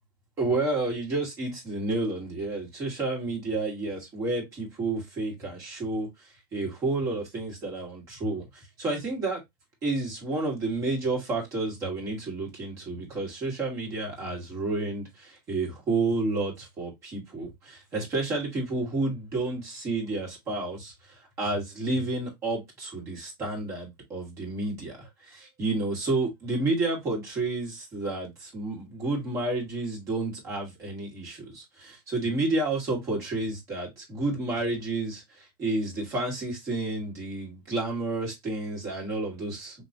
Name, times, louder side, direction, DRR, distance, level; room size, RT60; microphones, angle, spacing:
voice 1, 0.4-6.1 6.5-9.4 9.8-39.8, right 2 dB, 25° right, 1.8 m, -30 dB
3.9 x 2.8 x 2.7 m
supercardioid pair, 170°, 11 cm